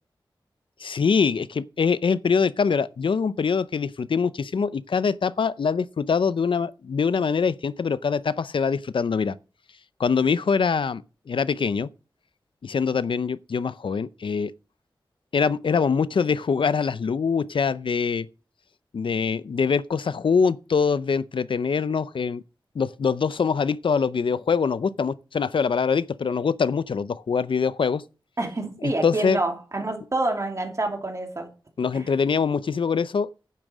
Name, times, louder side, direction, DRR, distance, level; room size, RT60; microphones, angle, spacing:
voice 1, 0.8-9.3 10.0-11.9 12.6-14.5 15.3-18.3 18.9-22.4 22.7-28.0 28.8-29.4 31.8-33.3, left 5 dB, 75° left, 0.5 m, -24 dB
voice 2, 28.4-31.5 31.9-32.1, right 2 dB, 35° right, 2.9 m, -27 dB
10.5 x 7.5 x 6.1 m
wide cardioid pair, 90°, 9 cm